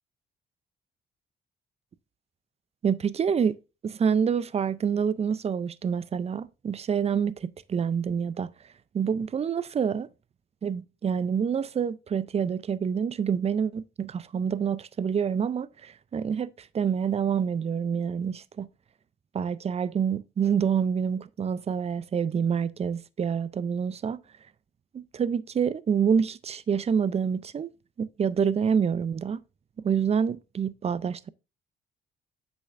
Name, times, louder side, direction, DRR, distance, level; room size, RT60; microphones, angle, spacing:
voice 1, 2.8-3.6 3.8-8.5 8.9-10.1 10.6-18.7 19.3-24.2 24.9-27.7 28.0-29.4 29.8-31.3, right 7 dB, 30° right, 0.4 m, -27 dB
8.5 x 6.1 x 2.5 m
cardioid pair, 90°, 20 cm